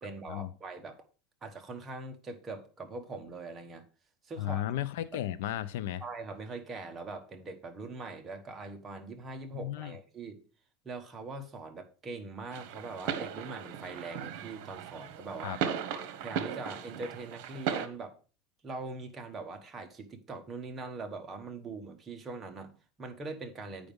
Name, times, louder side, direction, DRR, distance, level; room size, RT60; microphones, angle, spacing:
voice 1, 0.0-1.0 1.4-3.8 4.2-4.6 6.0-10.4 10.8-15.6 16.2-18.2 18.6-23.9, right 3 dB, 20° right, 1.1 m, -42 dB
voice 2, 4.4-6.0 9.5-10.0 15.4-15.6, left 12 dB, 80° left, 0.6 m, -34 dB
sound 1, 12.5-17.9, right 8 dB, 60° right, 1.1 m, -37 dB
9.0 x 5.1 x 5.3 m
supercardioid pair, 155°, 0 cm